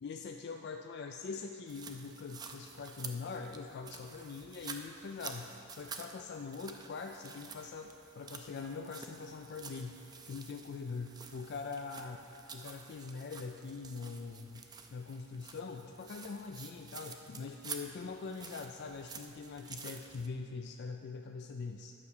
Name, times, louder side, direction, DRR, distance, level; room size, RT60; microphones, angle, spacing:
voice 1, 0.0-12.2 12.5-14.6 14.9-21.9, left 4 dB, 55° left, 4 dB, 0.4 m, -43 dB
sound 1, 1.7-20.3, right 5 dB, 20° right, 0.5 m, -50 dB
9.7 x 6.0 x 6.5 m, 2.7 s
head